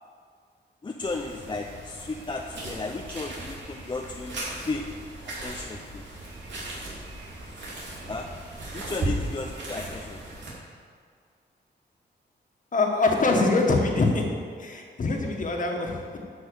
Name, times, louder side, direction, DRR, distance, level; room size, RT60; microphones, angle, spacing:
voice 1, 0.8-4.9 5.2-6.0 8.1-8.3 8.7-10.2, left 3 dB, 25° left, 2 dB, 0.6 m, -34 dB
sound 1, 1.0-10.5, right 1 dB, 80° right, 3.1 m, -37 dB
voice 2, 12.7-14.3 14.6-16.2, left 3 dB, 45° left, 1 dB, 1.7 m, -24 dB
11.0 x 6.2 x 7.1 m, 2.1 s
wide cardioid pair, 125°, 18 cm